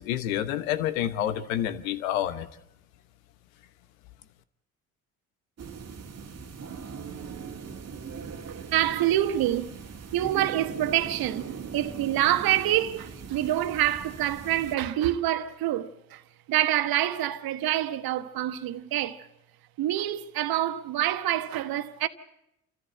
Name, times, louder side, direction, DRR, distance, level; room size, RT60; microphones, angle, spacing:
voice 1, 0.0-2.5, left 11 dB, 85° left, 1.1 m, -28 dB
sound 1, 5.6-14.8, right 6 dB, 40° right, 1.8 m, -40 dB
voice 2, 8.7-9.8 10.1-16.2 16.5-19.3 19.8-22.1, right 13 dB, 60° right, 1.3 m, -26 dB
27.5 x 14.0 x 7.7 m
hypercardioid pair, 55°, 40 cm